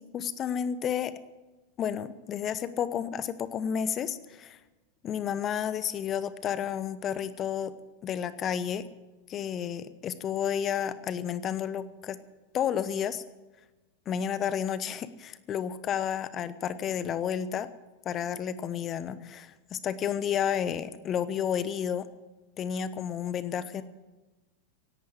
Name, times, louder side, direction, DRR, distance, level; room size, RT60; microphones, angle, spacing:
voice 1, 0.1-1.1 1.8-4.6 5.0-7.7 8.0-8.8 9.3-12.2 12.5-13.2 14.1-17.7 18.0-22.1 22.6-23.8, left 8 dB, 30° left, 15 dB, 1.0 m, -31 dB
16.5 x 11.5 x 7.2 m, 1.2 s
figure-of-eight pair, 90°, 0 cm